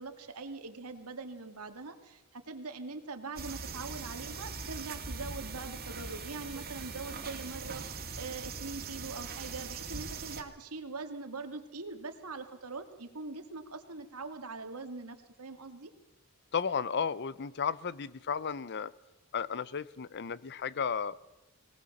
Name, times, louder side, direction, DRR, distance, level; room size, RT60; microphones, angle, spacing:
voice 1, 0.0-15.9, right 3 dB, 85° right, 6 dB, 2.1 m, -42 dB
sound 1, 3.4-10.4, right 4 dB, 45° right, 2.2 m, -41 dB
voice 2, 16.5-18.9 19.3-21.2, left 6 dB, 50° left, 19 dB, 0.6 m, -33 dB
20.5 x 18.5 x 7.2 m, 1.0 s
head